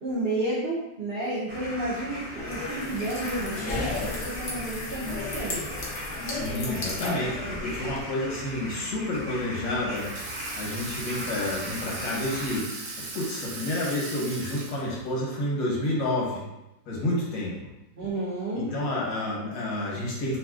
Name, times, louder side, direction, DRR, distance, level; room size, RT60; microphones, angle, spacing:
voice 1, 0.0-5.7 18.0-18.7, right 1 dB, 70° right, -9 dB, 0.5 m, -31 dB
sound 1, 1.5-12.6, left 1 dB, 50° right, 0.9 m, -38 dB
sound 2, 2.4-8.0, left 2 dB, 65° left, 0.6 m, -34 dB
voice 2, 6.2-10.1 10.6-12.7 13.1-16.4 16.9-17.5 18.5-20.4, left 1 dB, 85° left, -4 dB, 1.6 m, -29 dB
Water tap faucet / Sink (filling or washing), 9.9-15.2, right 3 dB, 90° right, 1.3 m, -38 dB
3.3 x 2.6 x 2.4 m, 0.96 s
omnidirectional pair, 2.0 m